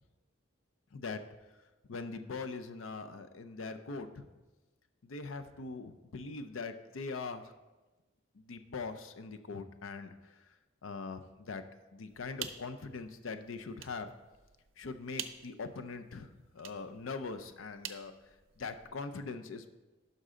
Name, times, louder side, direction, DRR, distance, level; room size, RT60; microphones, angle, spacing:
voice 1, 1.9-4.3 5.0-7.5 8.4-10.1 10.8-11.6 11.9-14.1 14.8-16.3 16.5-18.1 18.6-19.7, left 4 dB, 80° left, 9 dB, 0.6 m, -41 dB
sound 1, 12.1-18.9, right 9 dB, 70° right, 0.6 m, -49 dB
11.5 x 5.4 x 3.7 m, 1.2 s
head